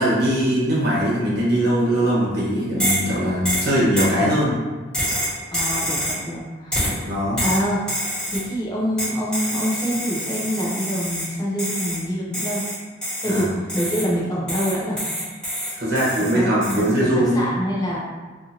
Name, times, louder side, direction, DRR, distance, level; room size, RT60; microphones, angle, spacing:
voice 1, 0.0-4.6 7.0-7.4 13.3-13.5 15.8-17.4, equal, 55° right, -7 dB, 1.0 m, -21 dB
sound 1, 2.8-3.1 3.4-4.2 4.9-6.3 6.7-7.0 7.4-8.5 9.0-11.3 11.6-12.0 12.3-14.1 14.5-16.3 16.6-16.9, equal, 5° left, 1.3 m, -26 dB
voice 2, 5.5-7.1 7.4-7.8 8.2-12.6 13.2-15.0 16.2-18.0, equal, 20° left, -4 dB, 0.6 m, -26 dB
2.6 x 2.6 x 2.7 m, 1.4 s
head